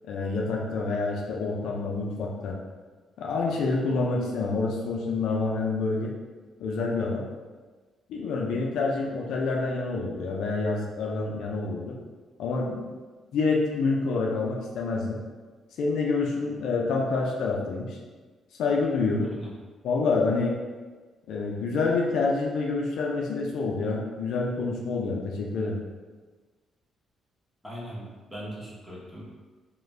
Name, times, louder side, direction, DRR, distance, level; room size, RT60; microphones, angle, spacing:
voice 1, 0.1-2.6 3.2-6.1 6.6-7.3 8.1-11.9 12.4-12.8 13.3-15.2 15.8-18.0 18.6-19.3 19.8-20.6 21.3-25.8, left 3 dB, 80° left, -1 dB, 0.4 m, -27 dB
voice 2, 27.6-29.2, equal, ahead, -7 dB, 0.9 m, -40 dB
2.4 x 2.2 x 3.2 m, 1.4 s
cardioid pair, 90°, 0 cm